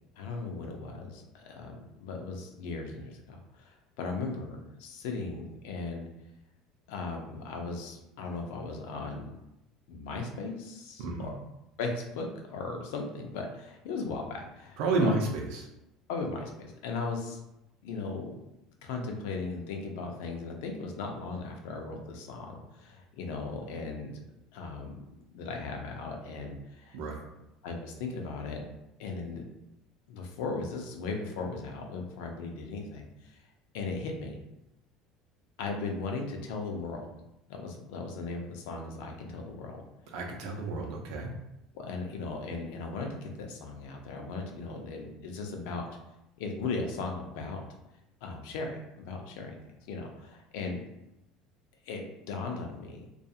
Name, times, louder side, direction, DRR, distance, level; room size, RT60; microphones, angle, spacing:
voice 1, 0.2-6.0 6.9-9.4 9.9-11.3 11.8-15.1 16.1-17.4 17.8-18.4 18.8-24.2 24.5-25.0 25.3-27.0 27.6-28.6 29.0-29.4 30.1-33.4 33.7-34.4 35.6-37.1 37.5-39.8 41.7-45.9 46.4-47.6 48.2-49.5 49.9-50.8 51.8-53.1, left 3 dB, 75° left, 2 dB, 0.5 m, -37 dB
voice 2, 14.8-15.7 26.9-27.2 40.1-41.3, right 3 dB, 65° right, 1 dB, 0.5 m, -30 dB
2.3 x 2.3 x 2.7 m, 0.89 s
cardioid pair, 180°, 0 cm